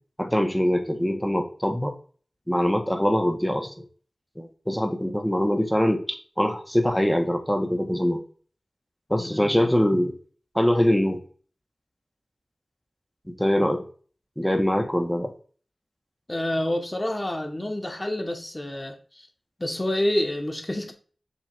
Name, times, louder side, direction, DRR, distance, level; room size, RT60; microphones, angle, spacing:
voice 1, 0.2-1.9 2.5-3.9 4.4-8.2 9.1-10.1 10.6-11.2 13.4-13.8 14.4-15.3, equal, 5° left, 1.8 m, -23 dB
voice 2, 9.2-9.5 16.3-19.3 19.6-20.9, left 1 dB, 25° left, 2.1 m, -28 dB
7.2 x 6.0 x 3.5 m
wide cardioid pair, 50°, 0 cm